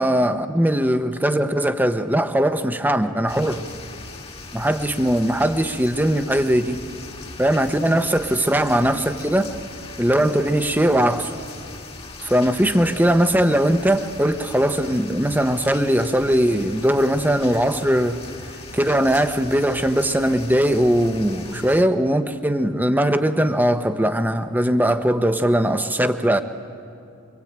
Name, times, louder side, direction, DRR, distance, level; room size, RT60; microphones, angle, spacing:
voice 1, 0.0-3.6 4.5-6.8 7.4-9.5 10.0-11.3 12.2-18.2 18.7-26.4, right 1 dB, 10° right, 9 dB, 0.9 m, -20 dB
sound 1, 3.3-21.8, left 3 dB, 25° left, 1.5 m, -39 dB
25.0 x 24.5 x 8.9 m, 2.5 s
head